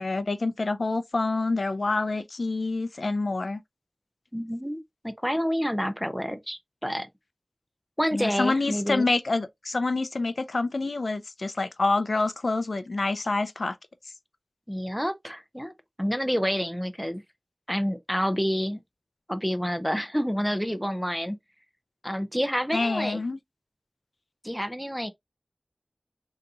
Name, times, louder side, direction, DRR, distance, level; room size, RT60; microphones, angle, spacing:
voice 1, 0.0-3.6 8.1-13.8 22.7-23.4, left 3 dB, 75° left, 0.3 m, -27 dB
voice 2, 4.3-7.1 8.0-9.1 14.7-15.7 16.0-17.2 17.7-18.8 19.3-21.4 22.0-23.2 24.4-25.1, equal, ahead, 0.4 m, -28 dB
3.9 x 2.7 x 2.3 m
wide cardioid pair, 65°, 0 cm